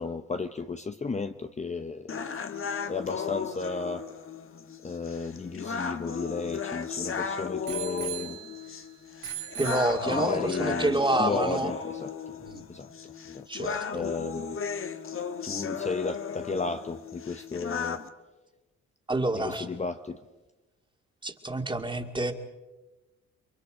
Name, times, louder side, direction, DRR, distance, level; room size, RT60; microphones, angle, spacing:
voice 1, 0.0-2.2 2.9-4.0 4.8-8.4 10.1-12.4 12.7-14.6 15.4-18.0 19.3-20.2, left 4 dB, 25° left, 0.9 m, -34 dB
sound 1, 2.1-18.1, left 6 dB, 45° left, 1.5 m, -35 dB
Bicycle bell, 5.4-7.0 7.7-8.8 9.2-10.5 11.2-11.3, right 11 dB, 70° right, 3.4 m, -40 dB
voice 2, 9.6-11.7 12.4-12.6 13.5-14.0 19.1-19.7 21.2-22.3, right 2 dB, 15° right, 2.4 m, -28 dB
30.0 x 23.5 x 5.1 m
cardioid pair, 90°, 30 cm